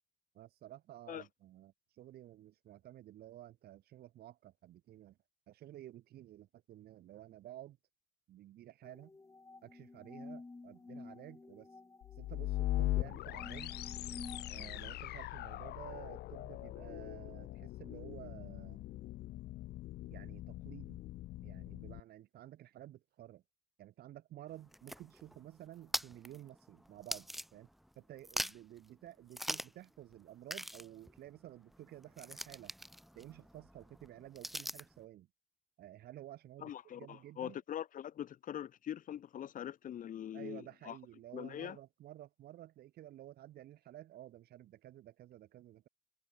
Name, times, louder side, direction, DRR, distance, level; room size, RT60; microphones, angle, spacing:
voice 1, 0.3-5.2 5.5-7.8 8.3-9.1 9.6-11.7 12.2-13.8 14.5-18.8 20.1-21.0 21.4-23.4 23.8-27.7 27.9-32.7 33.1-35.3 35.8-37.6 40.3-45.9, right 13 dB, 70° right, 3.5 m, -53 dB
sound 1, 8.8-14.9, left 3 dB, 15° left, 2.7 m, -51 dB
sound 2, 12.0-22.0, left 16 dB, 75° left, 1.7 m, -41 dB
sound 3, 24.5-27.9 28.2-28.8 29.3-29.9 30.1-30.2 30.5-35.0, equal, ahead, 1.0 m, -43 dB
voice 2, 36.6-41.0 41.3-41.8, left 10 dB, 50° left, 1.7 m, -43 dB
cardioid pair, 110°, 17 cm